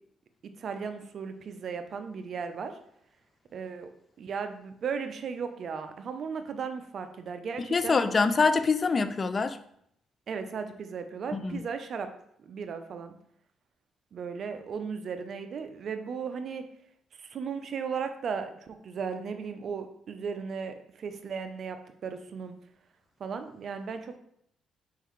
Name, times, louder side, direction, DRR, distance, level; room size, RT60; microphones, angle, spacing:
voice 1, 0.6-2.8 3.5-3.9 4.2-8.0 10.3-12.1 12.4-13.1 14.1-16.7 17.1-22.6 23.2-24.2, right 6 dB, 55° right, 8 dB, 0.5 m, -36 dB
voice 2, 7.7-9.6 11.3-11.6, left 4 dB, 35° left, 11 dB, 0.3 m, -25 dB
4.5 x 3.7 x 3.1 m, 0.71 s
cardioid pair, 90°, 0 cm